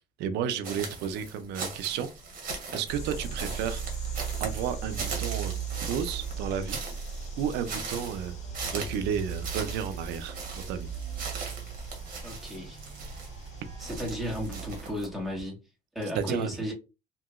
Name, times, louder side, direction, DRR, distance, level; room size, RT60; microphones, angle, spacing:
voice 1, 0.2-2.1 2.7-3.8 4.4-5.6 5.8-6.8 7.4-8.3 8.7-10.9 16.1-16.5, right 8 dB, 90° right, 0.5 m, -32 dB
sound 1, 0.6-15.0, right 4 dB, 55° right, 1.2 m, -40 dB
sound 2, 2.4-15.4, equal, 35° right, 1.0 m, -48 dB
sound 3, 2.9-14.9, right 7 dB, 45° left, 1.1 m, -38 dB
voice 2, 12.2-12.8 13.8-15.6 15.9-16.7, equal, ahead, 1.4 m, -34 dB
2.9 x 2.7 x 2.4 m
cardioid pair, 110°, 17 cm